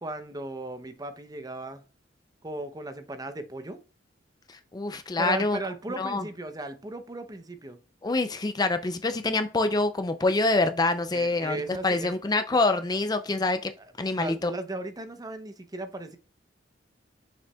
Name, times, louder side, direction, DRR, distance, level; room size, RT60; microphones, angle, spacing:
voice 1, 0.0-1.8 2.4-3.8 5.2-7.8 11.1-12.2 13.8-16.2, right 2 dB, 20° right, 0.7 m, -36 dB
voice 2, 4.5-5.6 6.0-6.2 8.0-11.6 11.8-13.7 14.0-14.5, left 2 dB, 20° left, 0.4 m, -26 dB
6.9 x 6.1 x 2.3 m
head